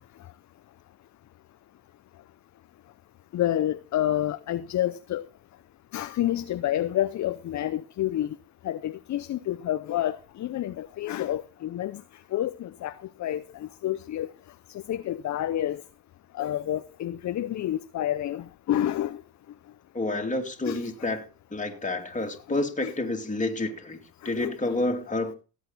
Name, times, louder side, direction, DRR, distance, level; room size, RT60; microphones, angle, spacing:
voice 1, 3.3-5.3 5.9-8.4 8.6-12.0 12.3-12.9 13.2-14.3 14.9-15.8 16.3-19.2 20.6-21.1 22.8-22.9 24.2-24.7, left 12 dB, 40° left, 0.7 m, -29 dB
voice 2, 19.9-24.0 24.2-25.3, left 2 dB, 15° left, 2.5 m, -29 dB
17.0 x 8.4 x 4.1 m
supercardioid pair, 90°, 47 cm